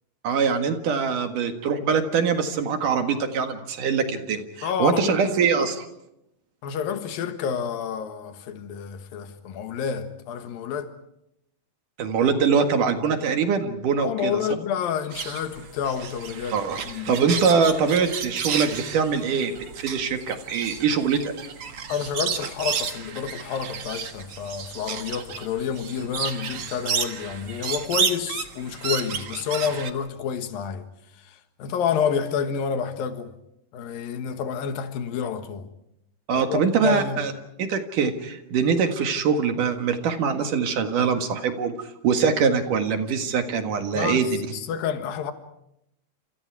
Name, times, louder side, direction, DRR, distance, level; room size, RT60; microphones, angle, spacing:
voice 1, 0.2-5.9 12.0-14.4 16.5-21.3 36.3-37.3 37.6-44.4, right 6 dB, 65° right, 3.2 m, -23 dB
voice 2, 4.6-5.4 6.6-10.9 14.0-16.6 16.8-17.2 21.9-30.8 31.2-33.3 33.7-35.7 36.3-37.2 43.9-45.3, left 7 dB, 80° left, 3.3 m, -29 dB
sound 1, 15.1-29.9, right 7 dB, 50° right, 2.1 m, -32 dB
29.5 x 28.5 x 4.8 m
omnidirectional pair, 4.1 m